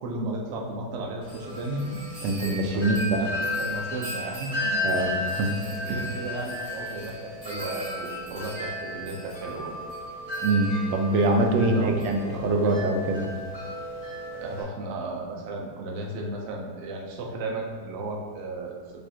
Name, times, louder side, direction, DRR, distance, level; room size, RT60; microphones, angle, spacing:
voice 1, 0.0-2.0 2.7-4.9 5.8-9.7 11.7-12.8 14.3-19.0, right 2 dB, 65° right, -1 dB, 0.7 m, -34 dB
Wind chime, 1.2-14.6, left 1 dB, 25° right, 1.1 m, -34 dB
voice 2, 2.2-3.2 4.8-5.6 5.9-6.0 10.4-13.3, right 2 dB, 85° right, 3 dB, 1.3 m, -24 dB
5.3 x 3.3 x 2.8 m, 1.4 s
omnidirectional pair, 1.9 m